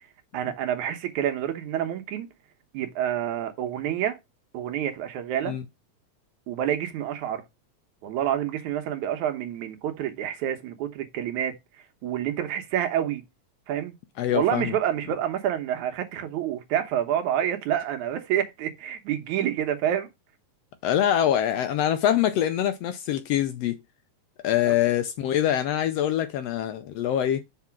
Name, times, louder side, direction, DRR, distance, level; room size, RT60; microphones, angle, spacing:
voice 1, 0.3-2.3 2.7-4.2 4.5-5.6 6.5-7.4 8.0-11.6 12.0-13.2 13.7-13.9 14.3-20.1 24.6-24.8, right 10 dB, 85° right, 2.4 m, -28 dB
voice 2, 14.2-14.7 20.8-23.8 24.4-27.4, left 11 dB, 75° left, 1.5 m, -24 dB
6.0 x 4.1 x 5.8 m
omnidirectional pair, 3.3 m